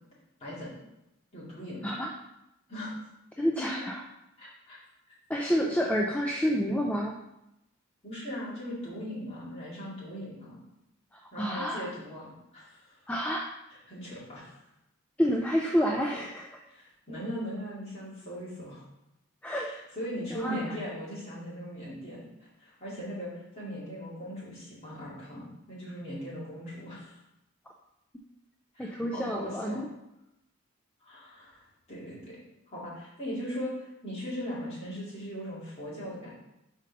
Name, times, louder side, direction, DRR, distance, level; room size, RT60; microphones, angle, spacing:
voice 1, 0.4-0.7 1.3-1.9 2.7-3.0 3.8-3.9 4.4-4.8 8.0-10.6 11.3-13.0 13.9-14.6 16.7-18.8 19.6-27.2 28.7-29.9 31.0-32.4 32.7-36.3, equal, 30° left, -8 dB, 2.3 m, -39 dB
voice 2, 3.4-4.0 5.3-7.2 11.1-11.9 13.1-13.5 15.2-16.6 19.4-19.7 20.3-20.7 28.8-29.9, equal, 5° left, 0 dB, 0.3 m, -29 dB
5.1 x 4.0 x 5.3 m, 0.88 s
head